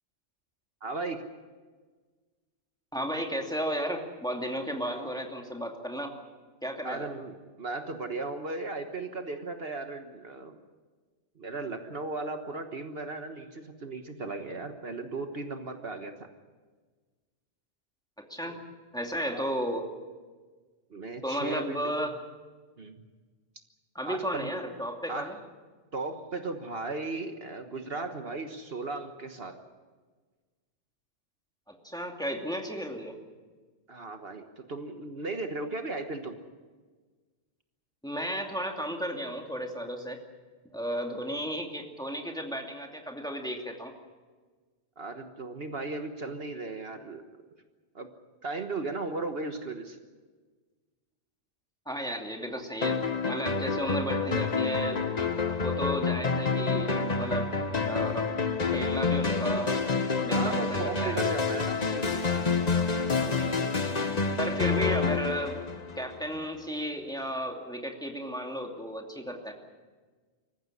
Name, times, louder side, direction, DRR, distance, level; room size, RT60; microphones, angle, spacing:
voice 1, 0.8-1.2 6.8-10.6 11.4-16.3 19.2-19.5 20.9-21.8 22.8-23.0 24.0-24.5 25.1-25.4 25.9-29.6 33.9-36.3 45.0-47.2 47.9-48.1 48.4-50.0 60.3-62.5, right 3 dB, 55° right, 6 dB, 1.6 m, -36 dB
voice 2, 2.9-6.1 6.6-7.1 18.3-18.6 18.9-19.9 21.2-22.2 23.9-25.4 31.7-33.2 38.0-40.2 40.7-43.9 51.9-55.0 55.6-57.5 57.8-58.3 58.7-59.8 60.2-61.1 63.1-63.7 64.4-65.6 66.0-69.5, equal, 5° left, 2 dB, 2.5 m, -34 dB
sound 1, 52.8-66.4, left 4 dB, 35° left, 1.2 m, -28 dB
25.5 x 15.0 x 9.8 m, 1.4 s
omnidirectional pair, 1.2 m